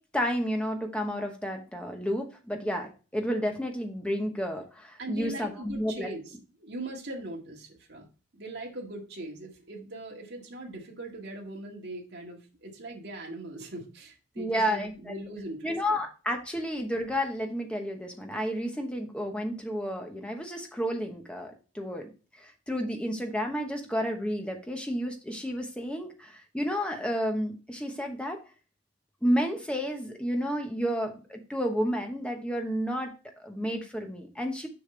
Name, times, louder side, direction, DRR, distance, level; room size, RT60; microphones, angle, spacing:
voice 1, 0.1-6.1 14.3-15.1 15.6-22.1 22.4-28.4 29.2-34.7, equal, 5° left, 3 dB, 1.0 m, -31 dB
voice 2, 5.0-6.2 6.6-8.1 8.3-16.0, right 1 dB, 60° right, -1 dB, 1.9 m, -40 dB
6.7 x 5.7 x 3.3 m, 0.34 s
head